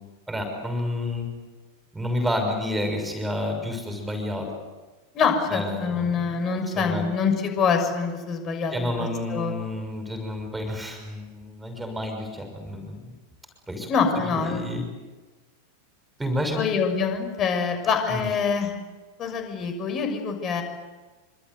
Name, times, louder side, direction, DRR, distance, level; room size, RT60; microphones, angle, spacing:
voice 1, 0.3-1.3 1.9-4.5 5.5-7.1 8.7-13.0 13.7-13.9 14.4-14.8 16.2-16.7 18.1-18.3, left 1 dB, 5° right, 5 dB, 6.1 m, -30 dB
voice 2, 5.1-8.9 9.3-9.5 13.9-14.6 16.5-18.7 19.2-20.6, left 5 dB, 30° left, 6 dB, 6.6 m, -25 dB
26.5 x 26.0 x 8.1 m, 1.2 s
figure-of-eight pair, 90°, 0 cm